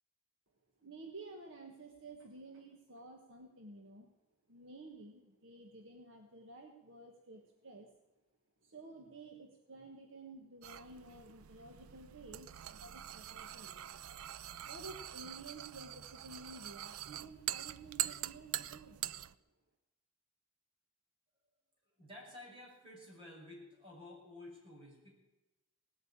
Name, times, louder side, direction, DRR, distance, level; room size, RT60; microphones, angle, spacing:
voice 1, 0.8-4.1 4.5-7.9 8.6-13.9 14.6-19.1, right 2 dB, 60° right, 3 dB, 1.5 m, -52 dB
sound 1, 10.6-19.3, right 12 dB, 75° right, 0.5 m, -44 dB
voice 2, 22.0-25.2, left 1 dB, 25° right, -2 dB, 6.2 m, -52 dB
18.5 x 8.6 x 8.8 m, 0.99 s
head